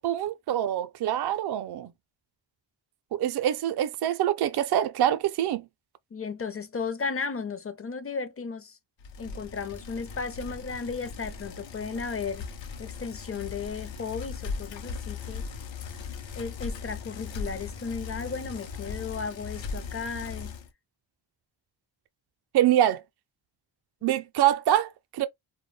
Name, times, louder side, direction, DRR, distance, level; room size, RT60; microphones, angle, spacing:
voice 1, 0.0-1.9 3.1-5.7 22.5-23.0 24.0-25.3, right 11 dB, 60° right, 0.5 m, -25 dB
voice 2, 6.1-8.8 9.2-12.4 12.8-15.4 16.3-20.5, left 5 dB, 30° left, 0.6 m, -35 dB
Bicycle, 9.0-20.7, left 5 dB, 75° left, 0.7 m, -38 dB
2.2 x 2.1 x 3.1 m
cardioid pair, 70°, 46 cm